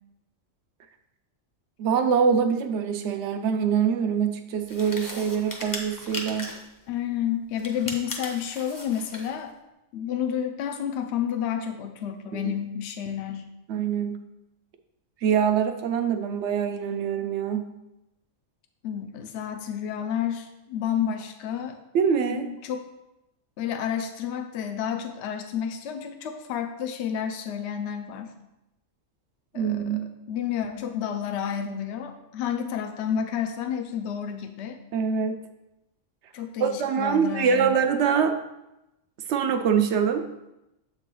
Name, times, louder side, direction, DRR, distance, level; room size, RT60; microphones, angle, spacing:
voice 1, 1.8-6.5 12.3-12.4 13.7-14.2 15.2-17.7 21.9-22.5 29.5-30.1 34.9-35.4 36.6-38.4 39.3-40.2, right 7 dB, 65° right, 7 dB, 0.8 m, -24 dB
sound 1, 4.7-6.7 7.6-9.3, left 1 dB, 20° left, 0.6 m, -37 dB
voice 2, 6.9-9.5 9.9-13.5 18.8-21.8 22.3-22.8 23.6-28.3 29.5-34.8 36.3-37.8, left 9 dB, 65° left, 6 dB, 0.8 m, -30 dB
7.3 x 3.8 x 4.6 m, 0.92 s
omnidirectional pair, 1.4 m